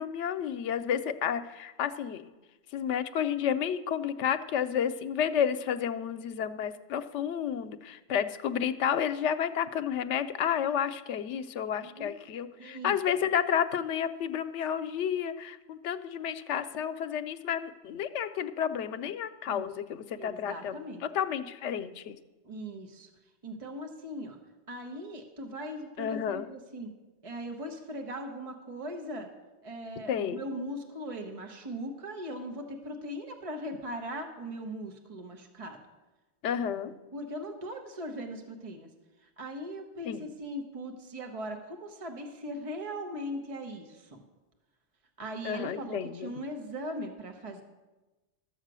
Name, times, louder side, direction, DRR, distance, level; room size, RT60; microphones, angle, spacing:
voice 1, 0.0-2.3 2.7-20.8 21.1-22.2 26.0-26.4 30.1-30.4 36.4-37.0 40.0-40.2 45.4-46.3, left 8 dB, 85° left, 10 dB, 0.9 m, -31 dB
voice 2, 11.8-12.1 12.6-13.0 19.5-19.7 20.2-21.0 22.4-23.1 23.4-24.4 24.7-26.9 27.2-29.3 29.6-35.8 37.1-38.9 39.2-44.2 45.2-47.6, equal, 30° right, 3 dB, 1.1 m, -39 dB
12.5 x 7.3 x 6.1 m, 1.2 s
omnidirectional pair, 1.2 m